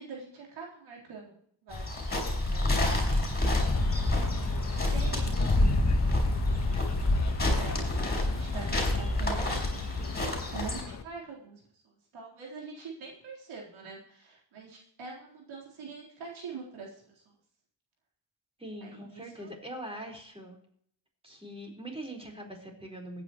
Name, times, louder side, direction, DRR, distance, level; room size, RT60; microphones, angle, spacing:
voice 1, 0.0-2.7 4.6-5.8 6.5-11.6 12.1-17.0 18.8-19.5, right 5 dB, 80° right, -3 dB, 4.0 m, -44 dB
sound 1, 1.7-10.8, left 2 dB, 20° left, 4.7 m, -27 dB
sound 2, 3.5-11.0, left 6 dB, 35° left, 1.1 m, -40 dB
voice 2, 18.6-20.6 21.2-23.2, right 1 dB, 10° right, 1 dB, 4.5 m, -42 dB
20.5 x 9.6 x 3.1 m, 0.63 s
cardioid pair, 90°, 48 cm